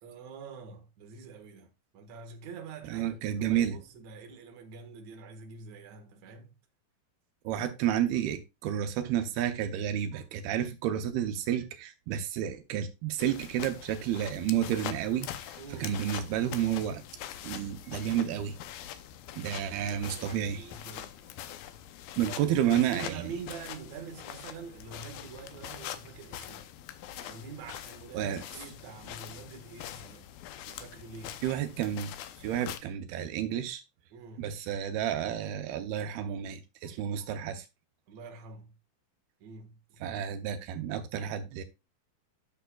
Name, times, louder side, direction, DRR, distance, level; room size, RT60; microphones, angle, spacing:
voice 1, 0.0-6.5 15.6-16.0 19.3-21.2 22.3-26.7 27.2-30.3 30.7-31.4 34.1-34.5 38.1-38.7 39.4-40.0, right 5 dB, 55° right, 2.3 m, -46 dB
voice 2, 2.9-3.8 7.4-17.0 17.4-18.6 19.4-20.7 22.2-23.3 28.1-28.4 31.4-32.1 32.4-33.8 34.4-37.7 40.0-41.6, right 10 dB, 80° right, 2.7 m, -31 dB
sound 1, 13.2-32.8, left 11 dB, 75° left, 2.4 m, -43 dB
12.5 x 6.8 x 2.3 m
omnidirectional pair, 4.4 m